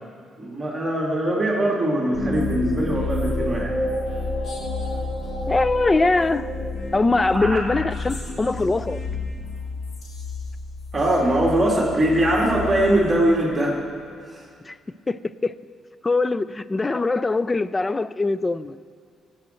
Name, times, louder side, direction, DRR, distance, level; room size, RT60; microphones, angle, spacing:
voice 1, 0.4-3.7 7.3-7.6 10.9-13.8 14.3-14.4, right 1 dB, 25° right, -3 dB, 2.3 m, -21 dB
sound 1, 2.1-13.7, left 2 dB, 55° left, 1.7 m, -30 dB
voice 2, 5.5-6.5 6.9-9.0 14.7-14.8 15.1-15.5 16.0-18.8, left 3 dB, 25° left, 16 dB, 0.3 m, -22 dB
16.0 x 7.6 x 4.4 m, 2.3 s
cardioid pair, 90°, 0 cm